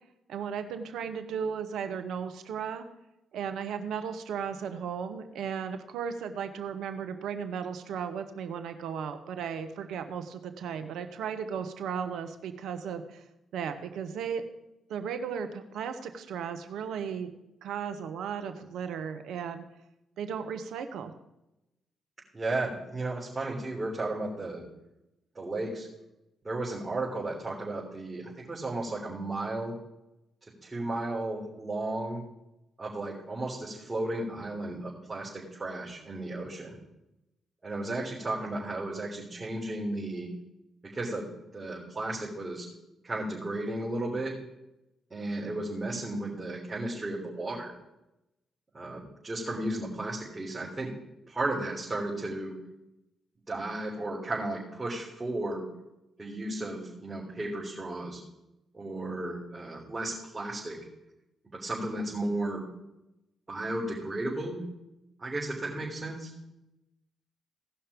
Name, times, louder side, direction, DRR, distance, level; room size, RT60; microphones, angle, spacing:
voice 1, 0.3-2.8 3.3-13.2 13.5-14.4 14.9-17.3 17.6-19.6 20.2-21.1, right 7 dB, 75° right, 8 dB, 1.0 m, -35 dB
voice 2, 22.3-24.6 25.4-25.9 26.4-28.2 28.5-29.7 30.6-32.2 32.8-36.8 37.6-40.3 40.9-41.2 41.5-42.7 43.0-44.3 45.1-47.7 48.7-50.9 51.3-52.5 53.5-55.6 56.2-58.2 58.7-60.8 61.5-62.6 63.5-64.6 65.2-66.3, right 2 dB, 30° right, -6 dB, 3.7 m, -34 dB
17.0 x 5.8 x 5.1 m, 0.91 s
hypercardioid pair, 45°, 0 cm